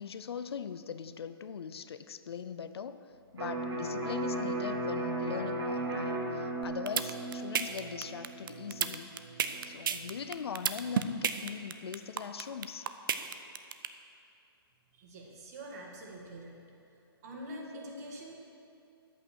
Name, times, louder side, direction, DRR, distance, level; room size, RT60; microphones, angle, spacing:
voice 1, 0.0-3.0 3.3-9.1 9.7-12.9, left 7 dB, 80° left, 12 dB, 0.6 m, -41 dB
Electric guitar, 3.4-11.0, right 2 dB, 90° right, 2.9 m, -37 dB
sound 1, 6.6-13.9, right 8 dB, 55° right, 0.7 m, -31 dB
voice 2, 14.9-16.6 17.2-18.3, equal, 40° right, 0 dB, 2.0 m, -45 dB
11.0 x 8.6 x 6.3 m, 2.6 s
hypercardioid pair, 160°, 13 cm